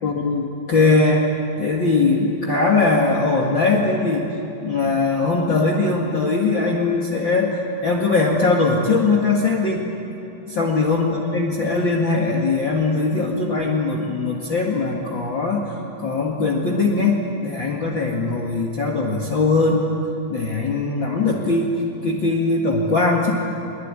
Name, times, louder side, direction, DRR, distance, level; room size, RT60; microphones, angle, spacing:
voice 1, 0.0-1.3 1.6-4.3 4.6-9.9 10.5-15.7 16.0-20.0 20.3-23.3, left 3 dB, 40° left, 0 dB, 2.3 m, -20 dB
23.5 x 22.0 x 9.8 m, 3.0 s
omnidirectional pair, 3.6 m